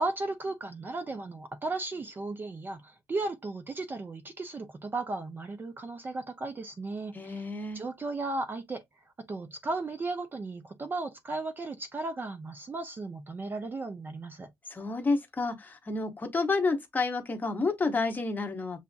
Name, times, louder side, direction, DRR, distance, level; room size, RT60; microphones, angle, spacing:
voice 1, 0.0-7.5 7.7-8.8 9.3-14.5, right 2 dB, 25° right, 0.5 m, -35 dB
voice 2, 7.1-7.8 14.7-18.8, left 3 dB, 20° left, 0.8 m, -30 dB
6.7 x 2.4 x 2.3 m
wide cardioid pair, 180°, 8 cm